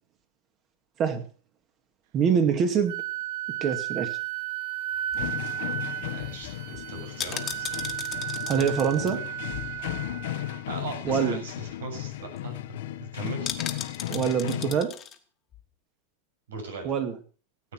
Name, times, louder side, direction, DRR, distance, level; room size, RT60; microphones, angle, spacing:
voice 1, 2.1-3.0 3.6-4.2 8.5-9.3 11.0-11.4 14.1-15.0 16.8-17.2, right 7 dB, 35° right, 8 dB, 2.3 m, -25 dB
Wind instrument woodwind instrument, 2.9-10.6, right 13 dB, 55° right, 0.9 m, -34 dB
sound 1, 4.9-10.4 10.7-10.8 11.0-11.3 11.7-11.8 12.0-12.4 13.4-15.2 15.5-15.6, left 9 dB, 25° left, 1.7 m, -38 dB
sound 2, 5.1-14.8, left 14 dB, 70° left, 1.2 m, -35 dB
voice 2, 6.1-7.7 10.7-12.8 13.1-13.5 16.5-16.9, right 4 dB, 85° right, 4 dB, 7.3 m, -39 dB
17.5 x 8.7 x 6.1 m, 0.40 s
supercardioid pair, 135°, 0 cm